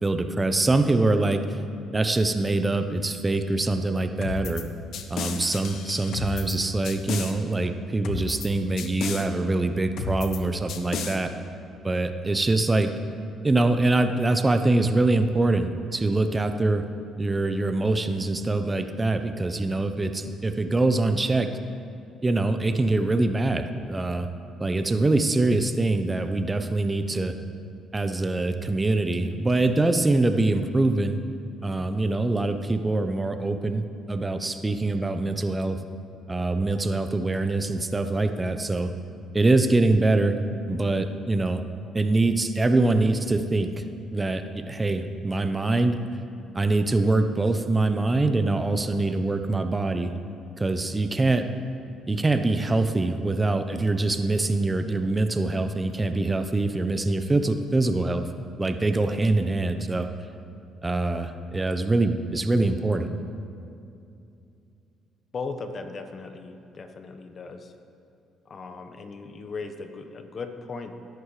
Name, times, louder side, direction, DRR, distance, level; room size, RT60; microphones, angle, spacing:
voice 1, 0.0-1.6 1.9-4.6 5.1-11.3 11.8-12.9 13.4-16.8 17.2-21.5 22.2-24.3 24.6-27.3 27.9-31.2 31.6-35.8 36.3-38.9 39.3-40.4 40.7-41.6 41.9-43.8 44.1-46.0 46.5-50.1 50.6-51.5 52.1-58.3 58.6-60.1 60.8-63.1, right 2 dB, 25° right, 7 dB, 1.0 m, -24 dB
sound 1, 4.2-4.6 4.9-6.6 6.8-7.3 8.0-8.5 8.8-9.2 10.0-10.4 10.7-11.2, left 5 dB, 65° left, 1.1 m, -32 dB
voice 2, 65.3-67.7 68.4-71.0, left 4 dB, 45° left, 7 dB, 1.3 m, -37 dB
20.5 x 11.0 x 3.4 m, 2.6 s
hypercardioid pair, 50°, 0 cm